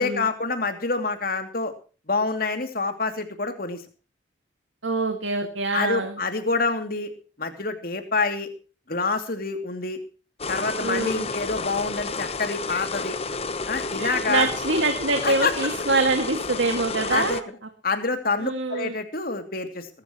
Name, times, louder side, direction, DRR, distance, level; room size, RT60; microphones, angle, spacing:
voice 1, 0.0-1.7 2.1-3.8 5.7-7.1 7.4-8.5 8.9-10.0 10.5-13.2 13.7-14.5 15.2-15.5 17.1-17.4 17.8-19.9, left 3 dB, 50° left, 6 dB, 2.7 m, -27 dB
voice 2, 4.8-6.2 10.8-11.3 14.0-17.5 18.4-18.9, right 3 dB, 85° right, 5 dB, 2.1 m, -25 dB
sound 1, 10.4-17.4, left 3 dB, 35° left, 1.0 m, -31 dB
22.0 x 13.0 x 3.1 m, 0.36 s
head